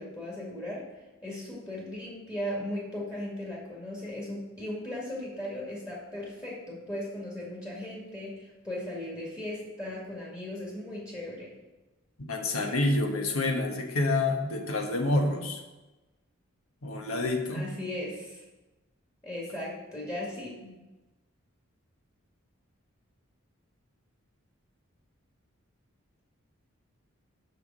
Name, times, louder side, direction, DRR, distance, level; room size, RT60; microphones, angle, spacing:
voice 1, 0.0-11.5 17.5-18.4 19.2-20.5, left 1 dB, 15° left, -5 dB, 2.0 m, -37 dB
voice 2, 12.3-15.6 16.8-17.7 20.7-20.8, left 2 dB, 85° left, 3 dB, 1.4 m, -28 dB
6.8 x 5.9 x 7.4 m, 1.1 s
head